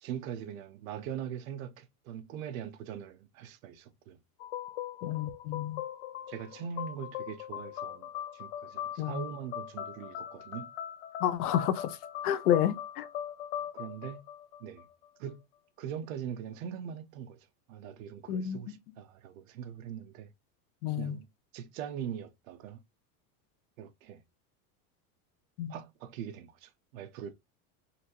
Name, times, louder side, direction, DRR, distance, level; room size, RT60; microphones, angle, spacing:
voice 1, 0.0-4.2 6.3-10.7 13.7-14.2 14.6-14.8 15.2-15.4 15.8-20.3 20.9-21.3 21.5-22.8 23.8-24.2 25.7-27.3, right 8 dB, 65° right, 0.7 m, -41 dB
Bell Synth line, 4.4-15.1, left 10 dB, 50° left, 0.5 m, -40 dB
voice 2, 5.0-5.8 9.0-9.2 11.2-12.0 12.2-13.1 18.3-18.8 20.8-21.2 25.6-25.8, left 10 dB, 85° left, 0.8 m, -30 dB
4.2 x 2.6 x 2.7 m
supercardioid pair, 175°, 44 cm